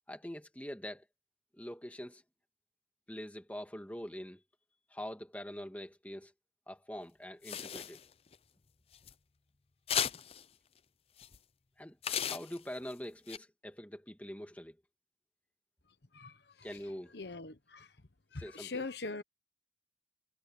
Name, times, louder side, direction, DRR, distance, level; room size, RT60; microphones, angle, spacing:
voice 1, 0.1-1.0 1.5-2.2 3.1-4.4 4.9-6.3 6.7-8.0 11.8-14.8 16.6-17.1 18.4-18.8, equal, 10° left, 2.1 m, -44 dB
sound 1, 7.4-8.4 8.9-9.1 9.9-10.4 11.2-11.4 12.0-12.9 13.3-13.4, left 9 dB, 30° left, 0.5 m, -35 dB
voice 2, 17.1-17.9 18.3-19.2, left 3 dB, 65° left, 1.2 m, -41 dB
head